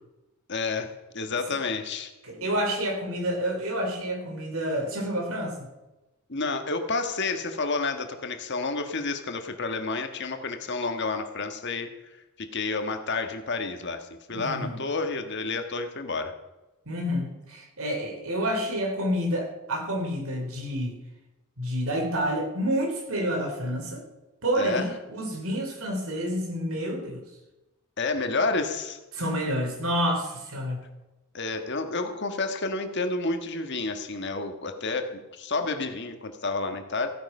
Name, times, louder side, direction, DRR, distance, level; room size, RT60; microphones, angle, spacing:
voice 1, 0.5-2.1 6.3-11.9 12.4-16.3 24.6-24.9 28.0-29.0 31.3-37.1, left 3 dB, 50° left, 6 dB, 1.6 m, -30 dB
voice 2, 2.2-5.7 14.3-14.8 16.8-21.0 21.6-24.0 24.4-27.2 29.1-30.8, equal, 70° right, 3 dB, 3.3 m, -29 dB
15.5 x 9.9 x 5.5 m, 1.0 s
head